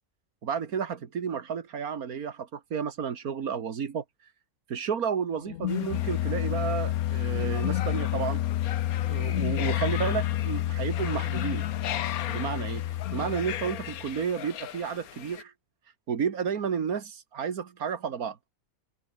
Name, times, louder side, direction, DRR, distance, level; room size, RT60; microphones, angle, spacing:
voice 1, 0.4-4.0 4.7-8.4 9.1-11.7 12.3-12.8 13.1-15.5 16.1-18.4, right 7 dB, 80° right, 2.0 m, -31 dB
sound 1, 5.4-14.2, left 13 dB, 65° left, 0.8 m, -29 dB
sound 2, 5.7-15.4, left 11 dB, 85° left, 1.3 m, -39 dB
omnidirectional pair, 1.5 m